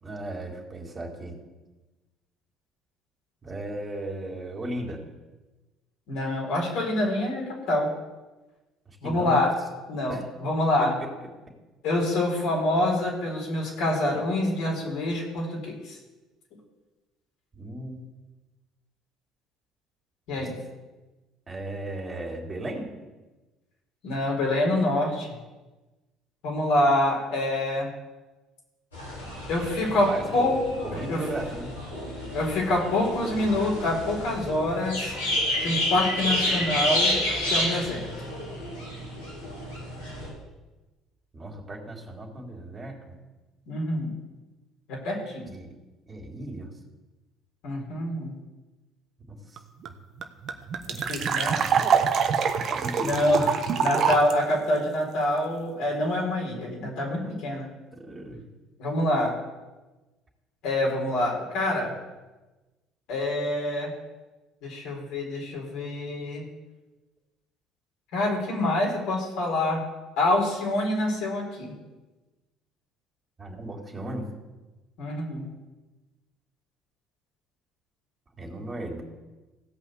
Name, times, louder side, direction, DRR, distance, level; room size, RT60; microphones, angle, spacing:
voice 1, 0.0-1.3 3.4-5.0 8.9-9.4 10.1-10.2 10.8-11.1 17.5-18.0 20.4-20.5 21.5-22.9 30.1-30.5 30.8-31.7 41.3-43.0 45.5-45.7 46.1-46.7 49.3-49.4 51.5-52.0 52.7-53.4 54.1-54.2 57.2-57.3 57.9-58.4 73.4-74.3 78.4-79.0, right 1 dB, 30° right, 0 dB, 3.9 m, -36 dB
voice 2, 6.1-7.9 9.0-9.5 9.9-11.0 11.8-16.0 20.3-20.6 24.0-25.3 26.4-27.9 29.5-30.6 31.1-31.2 32.3-35.1 35.6-37.2 37.5-38.1 43.7-44.1 44.9-45.5 47.6-48.3 51.0-51.6 53.0-57.7 58.8-59.4 60.6-62.0 63.1-63.9 64.6-66.5 68.1-69.8 70.2-71.7 75.0-75.5, left 1 dB, 65° left, -2 dB, 4.8 m, -26 dB
sound 1, 28.9-40.3, left 1 dB, 85° left, 5.2 m, -30 dB
sound 2, 49.6-49.7 49.8-49.9 50.2-54.3, right 7 dB, 50° right, 1.2 m, -25 dB
16.5 x 5.6 x 8.3 m, 1.1 s
hypercardioid pair, 60°, 0 cm